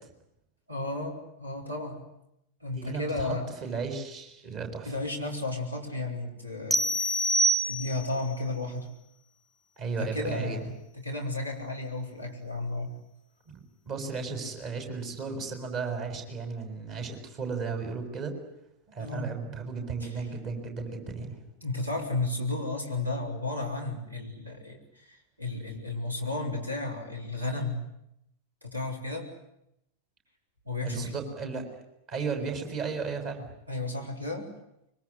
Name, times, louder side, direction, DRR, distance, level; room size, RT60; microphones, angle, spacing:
voice 1, 0.7-2.0 2.6-3.5 4.9-7.3 7.7-8.9 10.0-12.9 19.0-19.3 20.0-20.1 21.6-27.8 28.6-29.3 30.7-31.2 33.7-34.5, left 2 dB, 85° right, 3 dB, 5.6 m, -33 dB
voice 2, 2.7-3.4 3.6-5.0 9.8-10.6 13.5-18.3 18.9-21.4 30.8-31.6 32.1-33.5, right 5 dB, 40° right, 5 dB, 7.0 m, -34 dB
sound 1, 6.7-8.2, right 2 dB, ahead, 1.6 m, -26 dB
25.5 x 23.5 x 9.9 m, 0.81 s
figure-of-eight pair, 90°, 0 cm